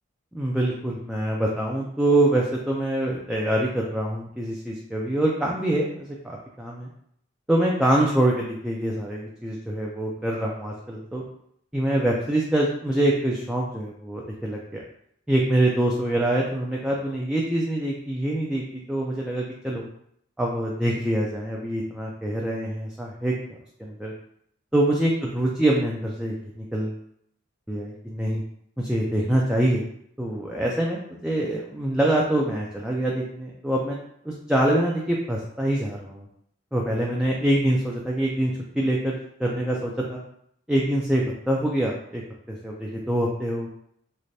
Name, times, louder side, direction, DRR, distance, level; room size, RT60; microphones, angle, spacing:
voice 1, 0.3-6.9 7.5-11.2 11.7-14.6 15.3-19.8 20.4-23.3 23.8-24.1 24.7-27.0 27.7-28.4 28.8-29.8 30.2-34.0 34.3-36.3 36.7-40.2 40.7-42.2 42.5-43.7, right 1 dB, 5° right, -3 dB, 0.3 m, -25 dB
3.2 x 3.2 x 2.6 m, 0.70 s
head